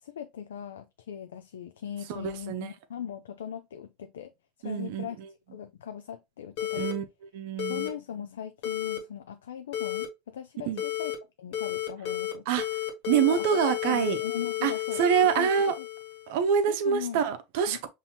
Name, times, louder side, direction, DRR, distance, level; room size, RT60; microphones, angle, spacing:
voice 1, 0.0-4.3 4.6-5.2 5.5-6.9 7.7-11.1 11.4-12.5 13.1-15.0 15.4-15.5 15.8-15.9 16.7-17.2 17.7-17.8, left 9 dB, 85° left, 0.3 m, -39 dB
voice 2, 2.1-2.7 4.6-5.3 6.7-7.0 7.3-7.9 10.7-10.8 12.5-12.6 13.1-14.2 14.6-15.7 16.3-17.9, right 8 dB, 70° right, 0.7 m, -26 dB
sound 1, 6.6-6.9 7.6-7.9 8.6-9.0 9.7-10.1 10.8-11.2 11.5-12.3 12.6-16.3, left 13 dB, 70° left, 1.3 m, -32 dB
5.5 x 2.7 x 2.8 m
hypercardioid pair, 95°, 0 cm